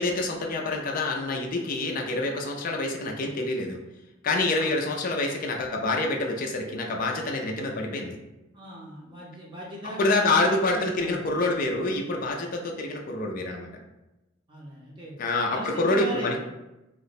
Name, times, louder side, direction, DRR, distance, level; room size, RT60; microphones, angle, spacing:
voice 1, 0.0-3.8 4.2-8.2 10.0-13.7 15.2-16.4, left 2 dB, 40° left, 1 dB, 0.4 m, -27 dB
voice 2, 8.5-11.2 14.5-15.1 15.5-16.4, right 1 dB, 25° right, -4 dB, 0.6 m, -38 dB
2.9 x 2.1 x 4.0 m, 0.98 s
head